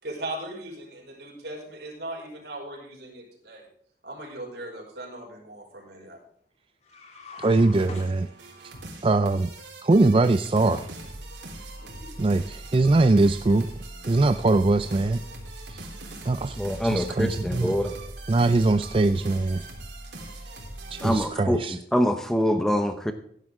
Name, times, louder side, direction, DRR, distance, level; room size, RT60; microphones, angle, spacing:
voice 1, 0.0-3.7 4.0-6.2 11.8-12.3, right 1 dB, 70° right, -1 dB, 5.3 m, -39 dB
sound 1, 6.8-8.8, left 2 dB, 40° left, 2.7 m, -44 dB
voice 2, 7.4-8.3 9.0-9.5 9.8-10.9 12.2-13.7 14.1-15.2 15.7-15.9 16.2-16.6 16.9-17.8 18.3-19.6 20.9-21.8, right 2 dB, 30° right, 10 dB, 0.4 m, -22 dB
sound 2, 7.7-21.3, right 1 dB, 90° right, 3.7 m, -41 dB
voice 3, 16.6-17.9 21.0-23.1, equal, 5° left, 7 dB, 0.7 m, -25 dB
16.5 x 11.0 x 3.6 m, 0.65 s
head